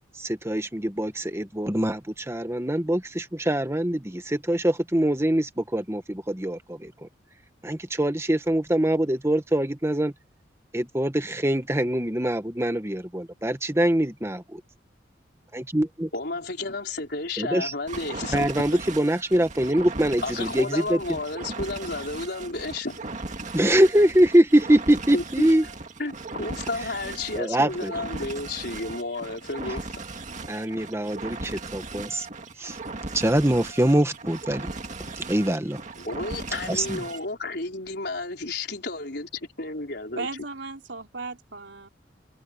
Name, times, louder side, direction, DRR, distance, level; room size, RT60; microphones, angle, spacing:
voice 1, 0.2-7.1 7.6-10.1 10.7-14.6 15.5-16.1 17.4-17.7 18.3-21.0 23.5-25.6 27.3-27.9 30.5-32.3 32.6-32.8 33.1-34.7 35.3-35.8 36.7-37.0, right 1 dB, 15° right, 1.5 m, -23 dB
voice 2, 16.1-18.7 20.2-23.0 25.1-25.5 26.0-29.9 36.0-40.3, left 2 dB, 60° left, 5.2 m, -32 dB
sound 1, 17.9-37.3, right 3 dB, 45° right, 2.0 m, -37 dB
voice 3, 40.2-41.9, right 3 dB, 80° right, 3.6 m, -36 dB
head